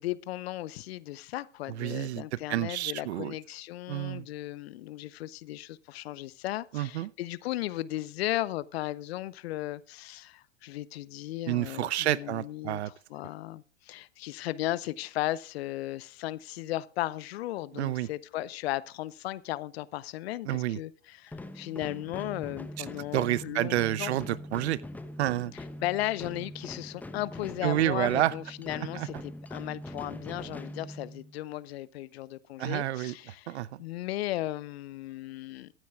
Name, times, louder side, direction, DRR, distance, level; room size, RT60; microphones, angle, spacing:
voice 1, 0.0-12.8 13.1-24.1 25.8-35.7, left 15 dB, 55° left, 0.8 m, -36 dB
voice 2, 1.7-3.3 3.9-4.3 6.7-7.1 11.5-12.9 17.7-18.1 20.5-20.8 22.8-22.9 23.1-24.8 25.2-25.5 27.6-28.3 28.8-29.1 32.6-33.1 33.5-33.8, right 14 dB, 60° right, 0.7 m, -29 dB
sound 1, 21.3-31.4, left 1 dB, 5° left, 0.9 m, -42 dB
22.0 x 9.5 x 2.4 m
hypercardioid pair, 105°, 38 cm